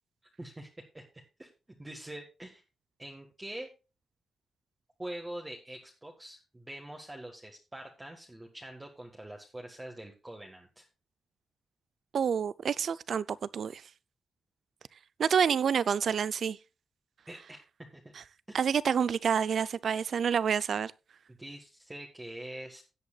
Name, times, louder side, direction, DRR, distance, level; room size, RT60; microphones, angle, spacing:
voice 1, 0.4-1.5 1.8-2.6 3.0-3.7 5.0-10.9 17.3-17.6 17.9-18.1 18.5-18.6 21.3-22.8, right 1 dB, 15° right, 1.6 m, -44 dB
voice 2, 12.1-13.8 15.2-16.6 18.5-20.9, right 7 dB, 60° right, 0.5 m, -28 dB
17.0 x 8.2 x 2.4 m
cardioid pair, 115°, 0 cm